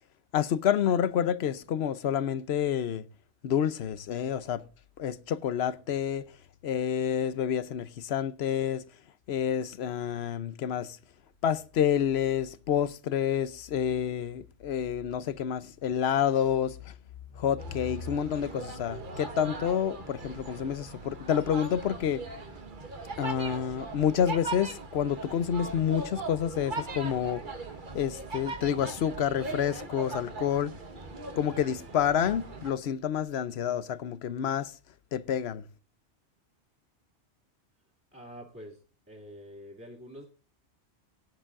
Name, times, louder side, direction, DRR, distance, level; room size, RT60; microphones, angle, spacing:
voice 1, 0.3-3.1 3.4-4.6 5.0-6.2 6.6-8.8 9.3-11.0 11.4-16.9 17.4-22.2 23.2-27.4 27.9-30.7 31.4-34.7 35.1-35.6, left 9 dB, 70° left, 0.9 m, -28 dB
sound 1, 17.6-32.7, right 3 dB, 45° right, 1.4 m, -40 dB
voice 2, 38.1-38.8 39.1-40.3, equal, 10° right, 2.3 m, -46 dB
18.5 x 9.9 x 2.4 m
omnidirectional pair, 1.2 m